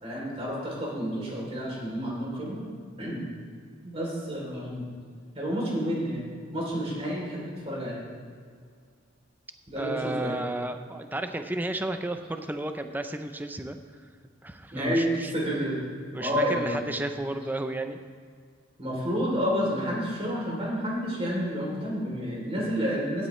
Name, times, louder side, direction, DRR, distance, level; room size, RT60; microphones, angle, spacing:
voice 1, 0.0-2.6 3.0-3.2 3.8-4.8 5.3-6.3 6.5-8.0 9.7-10.4 14.7-15.8 16.2-16.8 18.8-23.3, equal, 30° right, -3 dB, 3.0 m, -30 dB
voice 2, 9.7-13.8 14.4-15.3 16.1-18.0, right 1 dB, 10° right, 7 dB, 0.4 m, -33 dB
16.0 x 8.7 x 3.1 m, 2.1 s
head